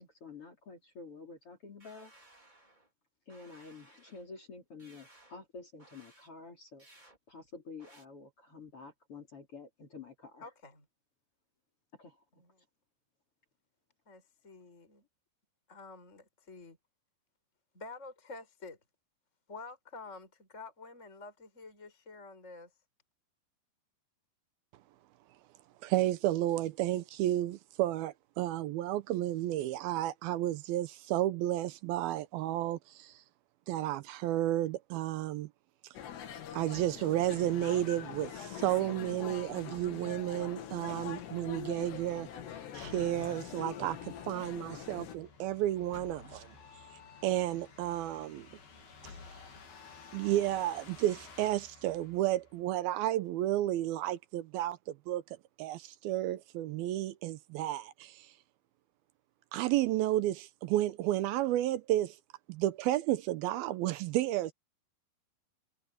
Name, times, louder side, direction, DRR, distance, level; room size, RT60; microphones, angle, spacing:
voice 1, 0.0-2.1 3.3-6.8 7.3-10.4 12.0-12.1, left 4 dB, 35° left, 4.2 m, -49 dB
sound 1, 1.8-2.9 3.3-4.3 4.8-5.4 5.8-6.3 6.8-7.2 7.8-8.0, right 1 dB, 10° right, 3.9 m, -60 dB
voice 2, 10.4-10.9 12.3-12.6 14.1-15.1 15.7-16.8 17.7-18.8 19.5-22.7, left 3 dB, 15° left, 5.7 m, -49 dB
voice 3, 25.8-33.1 33.7-35.5 36.5-42.3 42.7-44.0 44.3-46.5 47.2-48.5 50.1-54.8 55.1-55.2 55.6-58.3 59.5-62.2 62.5-64.5, right 14 dB, 80° right, 2.4 m, -32 dB
sound 2, 35.9-45.2, left 9 dB, 80° left, 4.5 m, -44 dB
sound 3, 41.4-52.9, left 5 dB, 60° left, 5.6 m, -53 dB
omnidirectional pair, 4.8 m